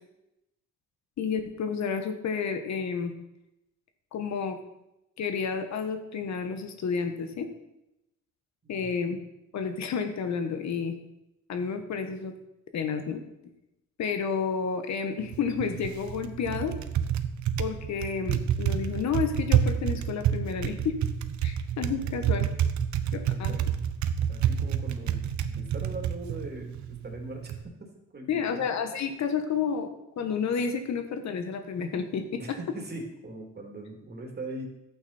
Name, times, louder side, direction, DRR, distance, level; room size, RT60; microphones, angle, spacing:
voice 1, 1.2-3.1 4.1-4.6 5.2-7.5 8.7-9.2 9.5-10.9 11.5-12.3 12.7-13.2 14.0-16.7 17.6-21.0 21.4-22.5 23.1-23.5 28.3-29.9 30.2-32.6, left 6 dB, 65° left, 7 dB, 1.4 m, -30 dB
Typing, 15.2-27.6, right 9 dB, 70° right, 0.9 m, -29 dB
voice 2, 23.3-23.6 24.3-27.6 28.1-28.6 32.4-34.6, right 2 dB, 35° right, 1 dB, 3.0 m, -40 dB
11.5 x 8.8 x 4.4 m, 0.87 s
cardioid pair, 90°, 30 cm